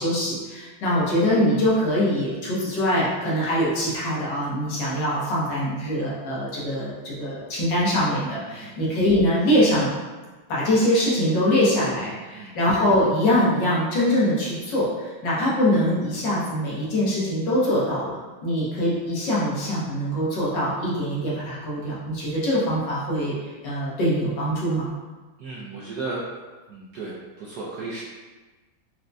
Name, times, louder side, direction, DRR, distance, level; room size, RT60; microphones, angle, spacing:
voice 1, 0.0-9.9 10.5-23.3 23.6-24.9, equal, 65° left, -7 dB, 1.5 m, -23 dB
voice 2, 8.5-8.8 12.3-12.6 25.4-26.2 26.7-28.0, right 3 dB, 75° right, -7 dB, 0.9 m, -35 dB
4.4 x 2.1 x 2.6 m, 1.3 s
omnidirectional pair, 2.2 m